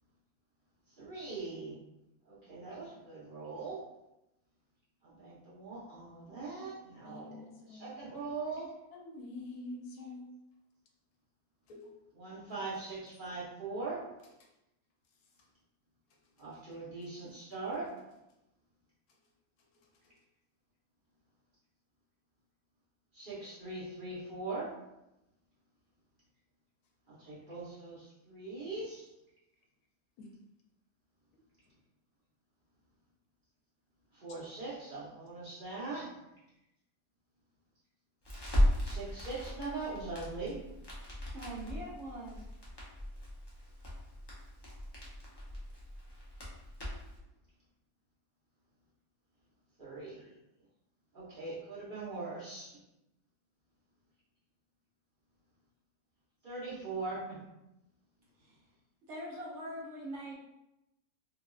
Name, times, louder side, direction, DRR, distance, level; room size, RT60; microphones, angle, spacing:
voice 1, 1.0-1.7 2.3-3.8 5.0-8.7 12.1-14.0 16.4-17.9 23.1-24.7 27.1-29.1 34.1-36.1 38.8-40.6 49.8-50.4 51.1-52.7 56.4-57.4, right 3 dB, 40° right, -9 dB, 1.0 m, -41 dB
voice 2, 6.3-6.7 7.0-7.9 8.9-10.3 11.7-11.9 30.2-30.3, left 2 dB, 85° left, 0 dB, 1.1 m, -47 dB
Crackle, 38.2-47.2, equal, 35° left, 0.4 m, -36 dB
voice 3, 41.3-42.4 50.1-50.3 58.4-58.6 59.1-60.3, right 1 dB, 60° right, -5 dB, 0.9 m, -43 dB
3.0 x 2.5 x 2.4 m, 0.91 s
omnidirectional pair, 1.5 m